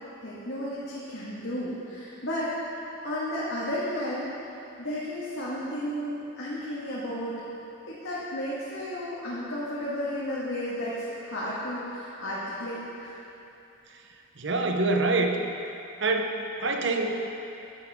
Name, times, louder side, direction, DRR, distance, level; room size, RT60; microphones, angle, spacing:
voice 1, 0.2-2.7 3.0-4.3 4.8-7.4 7.9-13.1, equal, 70° left, -8 dB, 1.7 m, -33 dB
voice 2, 14.4-15.4 16.0-17.4, right 2 dB, 55° right, 3 dB, 0.8 m, -26 dB
12.0 x 10.5 x 3.6 m, 2.8 s
head